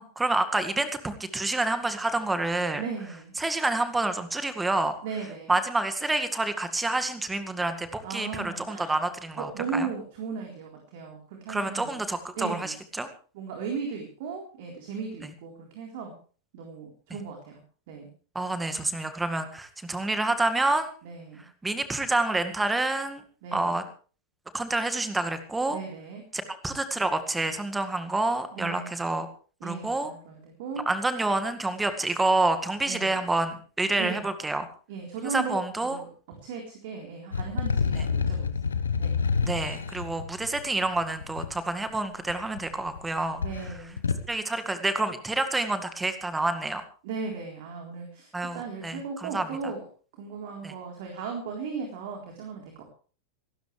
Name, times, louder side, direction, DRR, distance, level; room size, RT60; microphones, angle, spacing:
voice 1, 0.0-2.8 3.4-5.0 5.5-9.9 11.5-13.1 17.1-17.2 18.4-20.9 21.6-23.2 23.5-23.8 24.5-25.8 26.3-29.3 29.6-30.1 30.9-34.7 35.2-36.0 39.4-43.4 44.3-46.8 48.3-49.4 50.6-50.7, right 2 dB, 10° right, 9 dB, 2.0 m, -28 dB
voice 2, 2.8-3.4 5.0-5.5 8.0-9.0 9.4-12.0 12.4-12.8 13.3-16.2 16.5-17.6 17.9-18.1 21.0-21.5 23.4-23.8 25.7-26.2 28.5-28.9 29.6-30.9 32.9-33.2 34.0-34.3 34.9-35.6 35.8-36.1 36.4-39.2 43.4-44.0 47.0-49.8 50.1-52.8, right 5 dB, 50° right, 1 dB, 3.8 m, -36 dB
sound 1, 37.3-41.5 42.3-43.0 43.3-44.3, left 5 dB, 70° left, 1.2 m, -28 dB
26.5 x 12.5 x 3.3 m, 0.39 s
figure-of-eight pair, 90°, 0 cm